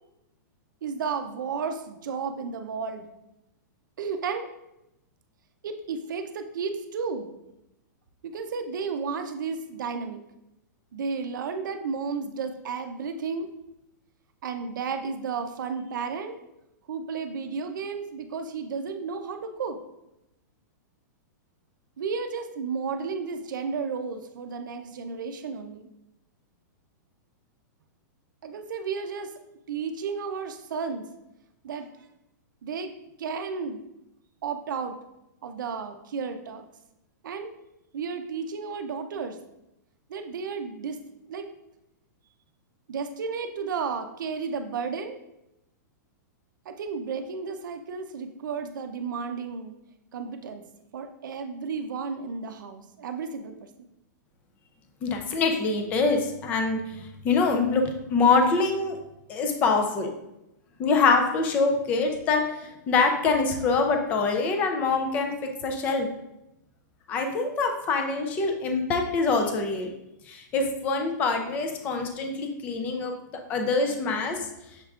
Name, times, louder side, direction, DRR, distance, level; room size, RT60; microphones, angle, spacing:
voice 1, 0.8-3.1 4.0-4.5 5.6-7.3 8.2-10.2 10.9-13.5 14.4-16.4 16.9-19.8 22.0-25.9 28.4-29.3 29.7-31.1 31.6-31.9 32.6-32.9 33.2-33.8 34.4-35.0 35.4-36.6 37.2-37.5 37.9-39.4 40.1-41.0 41.3-41.5 42.9-45.2 46.7-49.8 50.1-50.6 50.9-53.7, right 5 dB, 90° right, 7 dB, 0.5 m, -33 dB
voice 2, 55.0-59.0 59.3-60.1 60.8-66.1 67.1-69.9 70.3-73.1 73.5-74.4, left 4 dB, 15° left, 4 dB, 0.4 m, -25 dB
6.4 x 3.5 x 2.3 m, 0.89 s
supercardioid pair, 175°, 10 cm